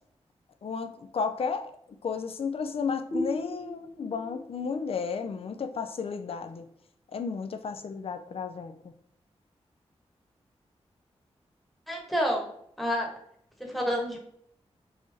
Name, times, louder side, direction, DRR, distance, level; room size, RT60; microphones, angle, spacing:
voice 1, 0.6-1.7 2.0-6.7 7.1-8.7, left 5 dB, 60° left, 8 dB, 0.4 m, -33 dB
sound 1, 3.1-6.5, equal, 90° left, 1.0 m, -38 dB
voice 2, 11.9-12.5 12.8-13.1 13.7-14.2, equal, ahead, 0 dB, 1.1 m, -28 dB
3.5 x 2.6 x 3.3 m, 0.69 s
cardioid pair, 60°, 11 cm